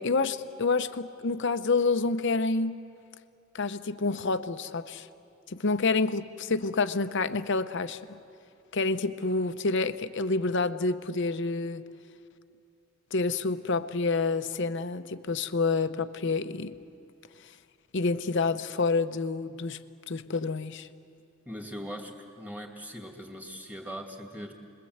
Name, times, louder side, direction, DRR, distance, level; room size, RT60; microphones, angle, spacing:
voice 1, 0.0-2.8 3.5-5.1 5.5-8.2 8.7-11.8 13.1-16.8 17.9-19.8 20.1-20.9, left 3 dB, 55° left, 0.8 m, -28 dB
voice 2, 21.5-24.5, equal, 5° right, 2.4 m, -40 dB
29.5 x 21.5 x 8.0 m
head